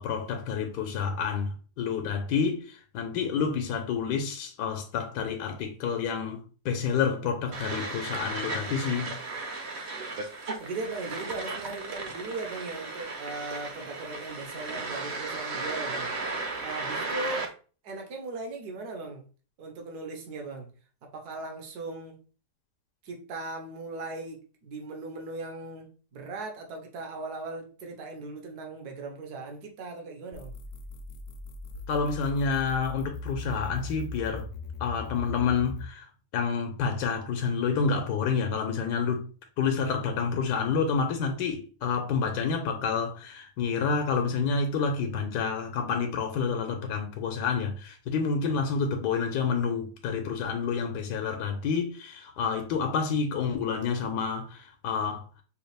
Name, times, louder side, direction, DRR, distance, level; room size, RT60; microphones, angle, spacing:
voice 1, 0.0-9.2 31.9-34.5 34.8-39.3 39.6-55.2, left 5 dB, 85° left, 1.3 m, -29 dB
sound 1, 7.5-17.5, right 3 dB, 55° right, 0.8 m, -35 dB
voice 2, 10.6-16.1 16.6-17.5 17.8-19.2 19.6-20.7 21.1-22.2 23.0-30.6, right 3 dB, 70° right, 1.4 m, -38 dB
sound 2, 30.3-35.9, left 3 dB, 70° left, 0.8 m, -39 dB
5.4 x 2.3 x 3.3 m
omnidirectional pair, 1.7 m